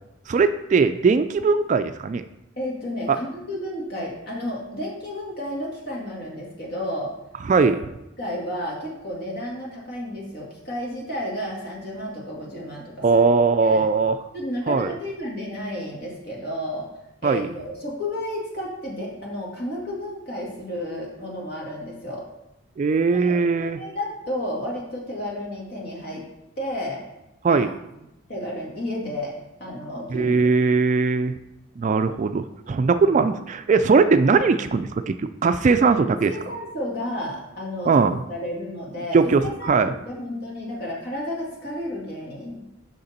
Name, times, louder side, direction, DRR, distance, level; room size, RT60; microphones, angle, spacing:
voice 1, 0.3-2.2 3.1-3.2 7.5-7.8 13.0-14.2 14.7-14.9 17.2-17.5 22.8-23.8 27.4-27.7 30.1-31.3 31.8-36.3 37.9-38.2 39.1-39.9, right 4 dB, 40° right, 10 dB, 0.3 m, -20 dB
voice 2, 2.6-7.1 7.6-7.7 8.2-13.2 13.6-13.9 14.3-16.9 17.2-22.2 23.1-26.2 26.6-27.0 27.5-27.6 28.3-29.3 29.6-30.5 36.3-38.0 38.3-42.7, left 1 dB, 55° left, -3 dB, 2.1 m, -32 dB
6.5 x 5.9 x 4.2 m, 0.88 s
head